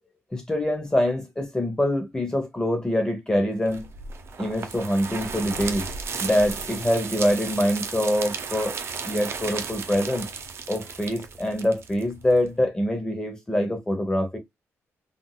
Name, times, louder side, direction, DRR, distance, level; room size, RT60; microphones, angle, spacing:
voice 1, 0.3-3.9 4.4-5.9 6.2-8.8 9.0-10.3 10.7-14.4, left 1 dB, 15° left, 0.9 m, -25 dB
sound 1, 3.7-12.5, right 5 dB, 50° right, 0.7 m, -34 dB
3.7 x 2.5 x 2.2 m
cardioid pair, 130°, 5 cm